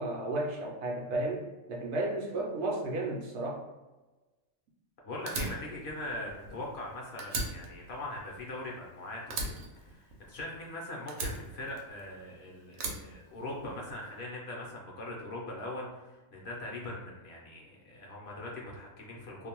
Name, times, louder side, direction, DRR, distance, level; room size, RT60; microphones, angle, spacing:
voice 1, 0.0-3.6, right 2 dB, 65° right, -2 dB, 0.8 m, -33 dB
voice 2, 5.0-9.5 9.8-19.5, left 1 dB, 60° left, -2 dB, 0.8 m, -41 dB
Fire, 5.3-6.9 7.2-8.9 9.3-10.6 11.1-12.2 12.7-13.9, right 3 dB, 90° right, 1.0 m, -38 dB
2.5 x 2.1 x 2.9 m, 1.2 s
omnidirectional pair, 1.3 m